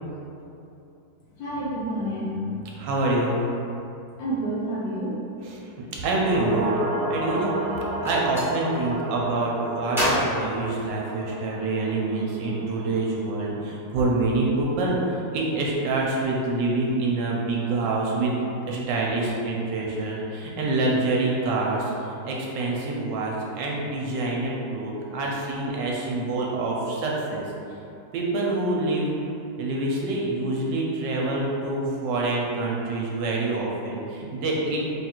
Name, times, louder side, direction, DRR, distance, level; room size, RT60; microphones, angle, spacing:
voice 1, 1.4-2.4 4.2-5.2, right 1 dB, 85° left, -9 dB, 1.7 m, -29 dB
voice 2, 2.8-3.4 5.4-5.7 6.0-6.8 7.1-7.6 8.0-18.4 18.7-21.9 22.2-27.4 28.1-29.1 29.6-34.8, right 2 dB, 75° right, -3 dB, 1.2 m, -26 dB
sound 1, 6.2-14.7 14.9-15.0, right 1 dB, 55° right, 1.0 m, -33 dB
Gunshot gunfire, 8.0-8.5 9.9-11.4, equal, ahead, 0.7 m, -27 dB
3.6 x 2.4 x 4.3 m, 2.7 s
omnidirectional pair, 2.1 m